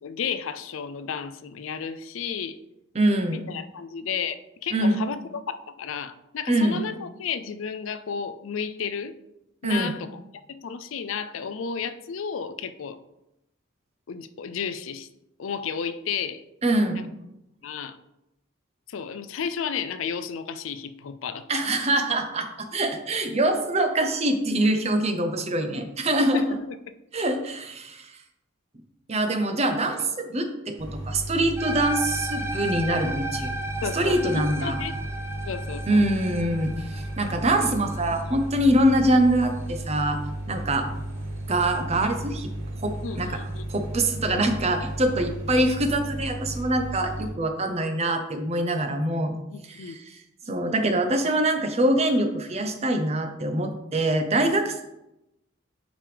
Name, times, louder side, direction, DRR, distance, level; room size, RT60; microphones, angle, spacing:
voice 1, 0.0-2.6 3.5-9.1 9.6-10.1 10.5-13.0 14.1-15.1 15.4-16.4 16.9-17.0 17.6-18.0 18.9-21.9 26.3-26.9 33.8-34.9 35.5-36.0 43.0-43.6 49.5-50.0 50.7-50.8, left 6 dB, 75° left, 11 dB, 0.4 m, -32 dB
voice 2, 2.9-3.4 4.7-5.0 6.5-6.8 9.6-9.9 16.6-17.1 21.5-26.4 27.1-28.1 29.1-33.5 33.9-34.8 35.9-40.2 40.5-40.9 41.5-42.5 42.8-43.3 43.7-49.3 49.7-50.2 50.5-54.8, right 1 dB, 30° right, 6 dB, 0.8 m, -24 dB
sound 1, 30.8-47.3, right 1 dB, 70° right, 2.7 m, -34 dB
sound 2, 31.6-40.0, right 1 dB, 10° right, 0.4 m, -35 dB
8.8 x 5.0 x 3.4 m, 0.89 s
head